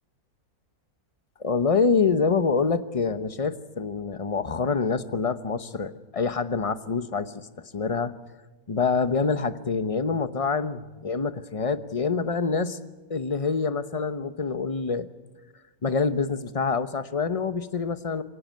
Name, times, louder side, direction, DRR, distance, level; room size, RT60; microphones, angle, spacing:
voice 1, 1.4-7.5 7.7-8.1 8.7-12.8 13.1-15.1 15.8-18.2, left 5 dB, 25° left, 12 dB, 0.9 m, -26 dB
25.0 x 18.0 x 9.5 m, 1.2 s
omnidirectional pair, 1.6 m